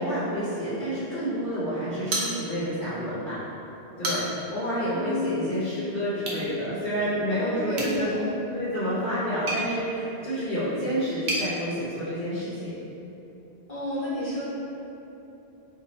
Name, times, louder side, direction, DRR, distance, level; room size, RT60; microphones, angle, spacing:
voice 1, 0.0-3.4 4.0-8.1 8.5-12.6, equal, 50° left, -13 dB, 1.0 m, -29 dB
sound 1, 2.1-2.9 3.2-3.3 3.8-4.5 6.2-6.5 7.7-11.5, right 1 dB, 60° right, 0.8 m, -33 dB
voice 2, 4.9-5.5 7.3-8.4 13.7-14.4, left 1 dB, 30° left, -10 dB, 1.2 m, -31 dB
2.8 x 2.7 x 4.0 m, 3.0 s
omnidirectional pair, 1.1 m